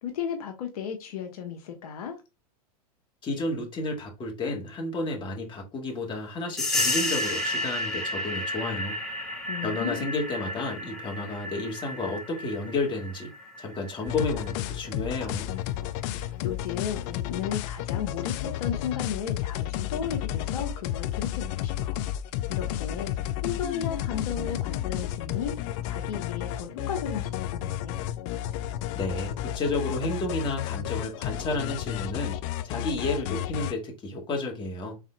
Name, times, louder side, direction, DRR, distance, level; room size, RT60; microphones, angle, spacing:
voice 1, 0.0-2.2 9.5-10.0 16.0-22.0 22.5-23.1 23.4-28.0, left 7 dB, 70° left, 1.0 m, -35 dB
voice 2, 3.2-9.0 9.6-13.3 13.6-15.5 28.9-32.4 32.6-35.0, left 2 dB, 25° left, 1.6 m, -31 dB
sound 1, 6.6-14.9, left 1 dB, 5° left, 2.0 m, -32 dB
sound 2, 14.1-33.7, left 12 dB, 50° left, 0.5 m, -32 dB
4.7 x 3.7 x 2.3 m
hypercardioid pair, 105°, 20 cm